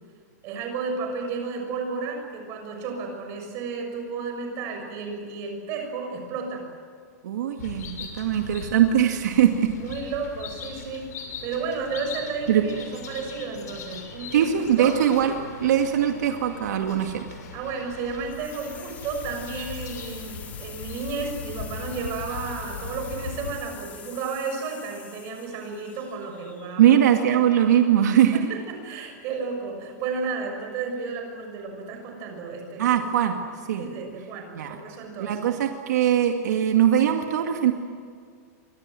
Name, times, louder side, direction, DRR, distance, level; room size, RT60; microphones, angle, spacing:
voice 1, 0.4-6.6 9.8-15.0 16.0-16.1 17.5-27.0 28.3-33.0 33.8-35.4, right 4 dB, 30° right, 3 dB, 6.7 m, -33 dB
voice 2, 7.2-9.7 12.5-12.6 14.3-15.3 15.6-17.3 26.8-28.4 32.8-33.4 33.7-33.9 34.5-34.8 35.2-37.7, right 10 dB, 75° right, 4 dB, 2.2 m, -21 dB
sound 1, 7.6-23.5, left 6 dB, 70° left, 6.5 m, -40 dB
sound 2, 18.2-27.1, left 7 dB, 15° left, 2.5 m, -46 dB
29.0 x 25.5 x 7.8 m, 2.2 s
supercardioid pair, 175°, 9 cm